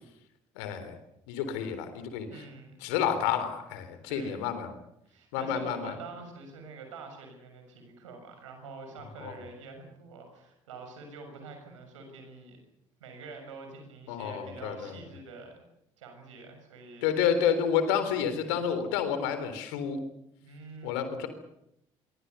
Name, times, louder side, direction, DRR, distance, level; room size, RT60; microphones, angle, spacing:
voice 1, 0.6-0.9 1.3-2.4 2.8-4.7 5.3-5.9 9.2-9.3 14.1-14.9 17.0-20.0 20.8-21.3, left 8 dB, 70° left, 10 dB, 3.7 m, -29 dB
voice 2, 2.3-2.8 4.1-4.4 5.0-12.6 13.0-15.6 16.0-17.1 20.4-21.0, right 4 dB, 80° right, 5 dB, 6.6 m, -46 dB
26.0 x 23.5 x 7.0 m, 0.80 s
figure-of-eight pair, 50°, 16 cm